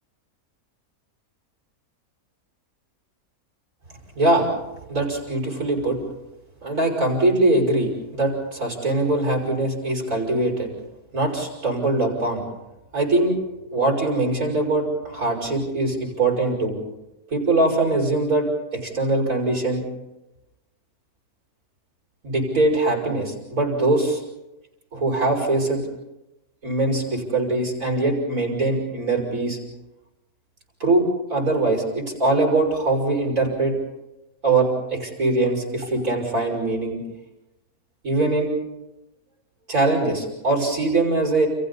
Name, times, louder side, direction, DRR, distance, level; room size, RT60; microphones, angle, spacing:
voice 1, 4.9-6.0 6.6-10.7 11.1-12.4 12.9-13.4 13.7-16.8 17.3-18.5 18.7-19.8 22.2-24.2 24.9-25.8 26.6-29.6 30.8-33.7 34.4-37.0 38.0-38.5 39.7-41.5, right 2 dB, 65° right, 0 dB, 6.7 m, -22 dB
30.0 x 28.5 x 4.2 m, 0.94 s
omnidirectional pair, 1.5 m